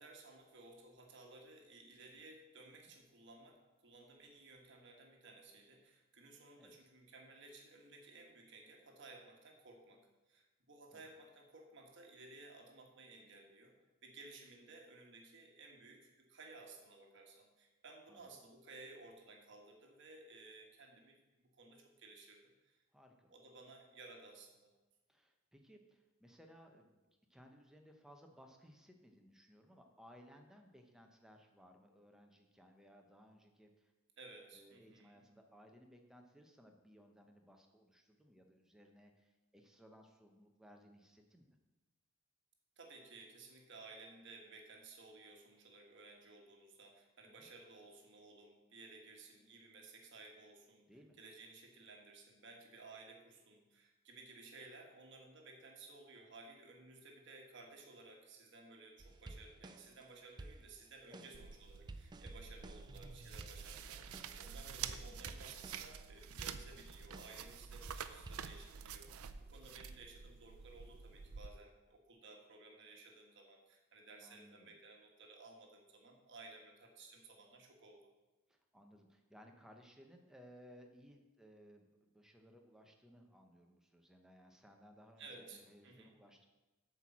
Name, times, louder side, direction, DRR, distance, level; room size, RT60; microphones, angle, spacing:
voice 1, 0.0-13.7 14.0-22.8 23.3-24.7 34.2-35.1 42.8-50.9 51.2-78.0 85.2-86.1, right 3 dB, 55° right, 1 dB, 1.4 m, -57 dB
voice 2, 18.1-18.4 22.9-23.3 25.1-27.0 27.3-33.9 34.5-41.6 47.2-47.5 50.9-51.2 61.1-61.3 64.9-65.3 74.2-74.8 78.5-86.5, equal, 5° right, 3 dB, 0.8 m, -62 dB
sound 1, 59.0-60.0 60.4-64.5 64.9-66.0 66.4-67.5 67.9-68.5, right 2 dB, 20° right, 0.3 m, -53 dB
sound 2, 61.3-71.5, right 7 dB, 85° right, 0.5 m, -49 dB
8.1 x 4.6 x 7.2 m, 1.1 s
head